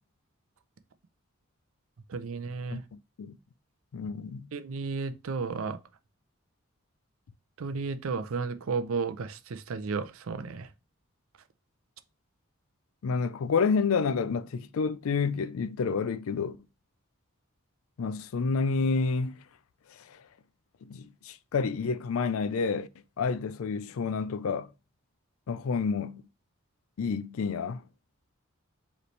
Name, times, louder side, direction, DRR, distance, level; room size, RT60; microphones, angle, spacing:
voice 1, 2.1-2.8 4.5-5.8 7.6-10.7, right 4 dB, 75° right, 0.5 m, -33 dB
voice 2, 3.9-4.5 13.0-16.6 18.0-19.4 19.9-20.2 20.8-22.9 23.2-24.7 25.5-26.2 27.0-27.8, left 5 dB, 75° left, 0.4 m, -29 dB
5.0 x 3.2 x 3.1 m
head